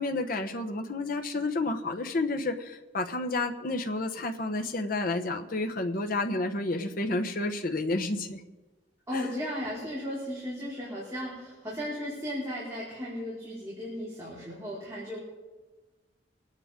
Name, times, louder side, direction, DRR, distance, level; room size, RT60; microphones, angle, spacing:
voice 1, 0.0-8.4 9.1-9.3, left 2 dB, 55° left, 6 dB, 1.1 m, -30 dB
voice 2, 9.1-15.2, equal, 15° right, -9 dB, 4.9 m, -35 dB
25.5 x 9.9 x 3.7 m, 1.2 s
head